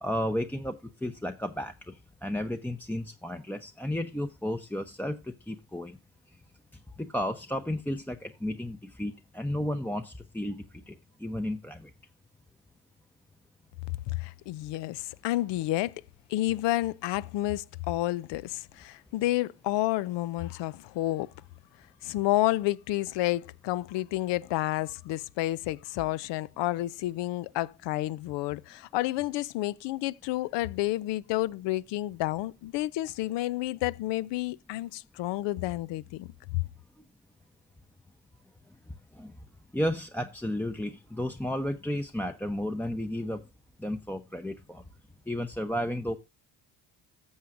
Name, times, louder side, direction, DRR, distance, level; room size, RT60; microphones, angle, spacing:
voice 1, 0.0-6.0 7.0-10.9 11.2-11.9 39.2-39.3 39.7-43.4 43.8-44.8 45.3-46.2, left 1 dB, 5° left, 0.7 m, -33 dB
voice 2, 14.1-16.0 16.3-21.3 22.0-36.3 36.5-36.6, left 16 dB, 70° left, 0.6 m, -30 dB
13.5 x 7.1 x 2.5 m
hypercardioid pair, 55°, 45 cm